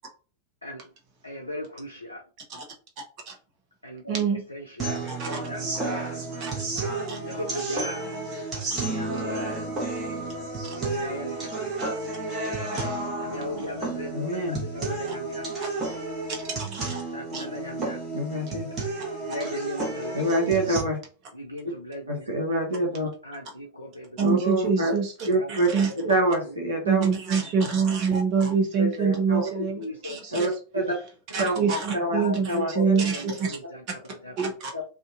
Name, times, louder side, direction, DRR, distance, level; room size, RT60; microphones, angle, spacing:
voice 1, 1.2-2.2 3.8-4.2 4.5-5.0 5.2-6.1 7.3-8.0 8.8-9.4 10.9-11.7 13.2-14.3 14.7-15.5 17.1-18.0 19.2-20.1 21.3-22.3 23.2-24.2 25.4-25.7 29.3-30.2 32.1-34.3, left 1 dB, 80° left, 1 dB, 0.4 m, -37 dB
voice 2, 4.1-4.4 5.1-5.4 6.4-6.5 7.1-7.2 12.8-12.9 13.6-13.7 15.0-15.1 16.4-17.0 17.3-17.4 24.2-25.1 25.5-25.9 26.8-30.5 31.3-33.6 34.4-34.7, right 5 dB, 40° right, 2 dB, 0.9 m, -25 dB
sound 1, 4.8-20.8, right 2 dB, 15° right, 1.2 m, -31 dB
voice 3, 14.1-14.6 18.1-18.7 20.1-21.0 22.1-23.1 24.2-24.9 25.3-25.7 26.0-27.0 28.8-29.4 30.3-31.0 31.4-31.5 31.9-32.2 32.5-32.7 34.7-34.8, right 1 dB, 75° right, 0 dB, 0.7 m, -26 dB
2.6 x 2.4 x 2.5 m, 0.36 s
figure-of-eight pair, 90°, 0 cm